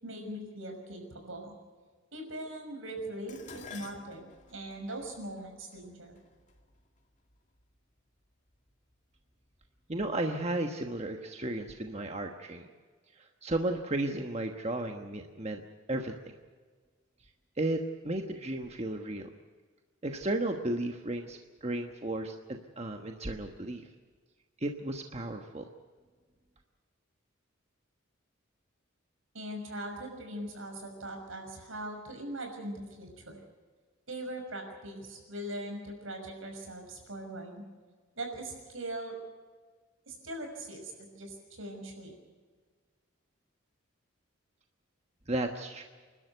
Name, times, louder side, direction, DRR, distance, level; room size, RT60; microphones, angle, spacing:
voice 1, 0.0-1.6 2.1-6.1 29.3-33.4 34.1-37.6 38.2-39.1 40.1-42.1, right 1 dB, 75° right, 4 dB, 6.0 m, -41 dB
Dishes pots and pans, 3.3-7.6 8.5-8.9 9.3-10.2 10.4-10.5, left 4 dB, 35° left, 2.2 m, -52 dB
voice 2, 9.9-12.7 13.2-15.6 15.9-16.3 17.6-19.3 20.0-23.9 24.6-25.6 45.3-45.8, right 1 dB, 30° right, 4 dB, 1.2 m, -34 dB
29.0 x 12.5 x 8.1 m, 1.5 s
head